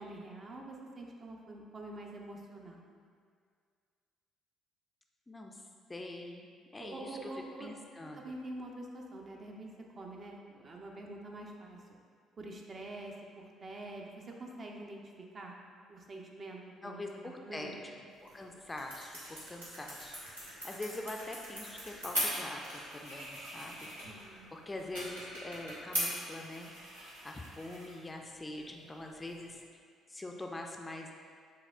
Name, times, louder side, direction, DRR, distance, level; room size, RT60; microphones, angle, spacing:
voice 1, 0.0-2.8 6.8-7.7 8.1-9.7 10.0-11.8 12.4-15.0 15.3-15.5 15.9-17.1 17.4-17.9 24.0-24.5, right 2 dB, 40° right, 0 dB, 0.5 m, -46 dB
voice 2, 5.3-5.6 5.9-6.5 6.7-7.3 7.6-8.2 16.8-17.9 18.2-22.6 22.9-23.9 24.5-26.7 27.2-29.6 30.1-31.1, left 2 dB, 20° left, 2 dB, 0.4 m, -44 dB
sound 1, 18.1-29.6, equal, 90° right, 1.1 m, -41 dB
4.8 x 3.4 x 2.3 m, 2.1 s
figure-of-eight pair, 50°, 0 cm